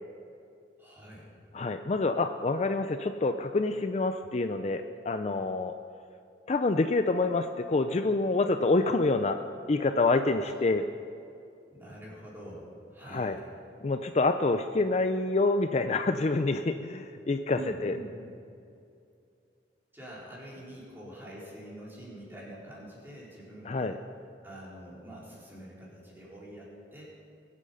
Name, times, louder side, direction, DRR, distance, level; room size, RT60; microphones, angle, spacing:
voice 1, 0.8-1.3 10.4-10.5 11.7-13.5 17.5-18.2 19.9-24.0 24.4-27.1, right 1 dB, 15° right, -7 dB, 3.9 m, -45 dB
voice 2, 1.5-5.8 6.5-9.4 9.7-10.8 13.1-13.4 13.8-17.9 23.7-23.9, left 3 dB, 40° left, 8 dB, 0.4 m, -27 dB
21.5 x 8.3 x 5.5 m, 2.5 s
head